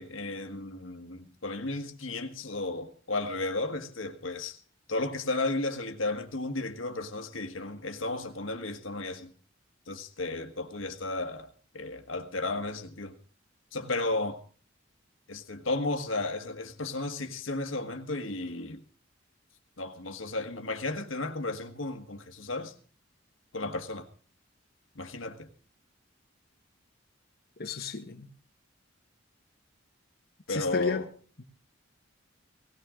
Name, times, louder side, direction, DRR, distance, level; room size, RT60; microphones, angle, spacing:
voice 1, 0.0-4.6 4.9-9.3 9.9-11.5 11.7-13.1 13.7-14.4 15.3-18.8 19.8-22.7 23.5-24.1 24.9-25.5 30.5-31.1, left 2 dB, 75° left, 1.5 m, -34 dB
voice 2, 27.6-28.3 30.5-31.1 31.4-31.5, left 5 dB, 55° left, 1.4 m, -32 dB
18.5 x 17.0 x 3.8 m
head